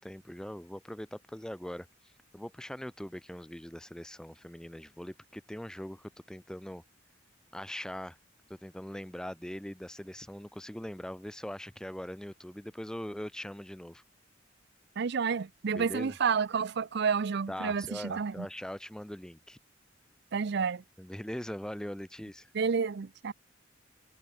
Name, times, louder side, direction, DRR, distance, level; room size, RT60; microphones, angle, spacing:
voice 1, 0.0-6.8 7.5-8.2 8.5-14.0 15.7-16.2 17.5-19.6 21.0-22.5, equal, 5° left, 0.4 m, -41 dB
voice 2, 15.0-18.5 20.3-20.8 22.5-23.3, right 6 dB, 60° right, 0.5 m, -30 dB
head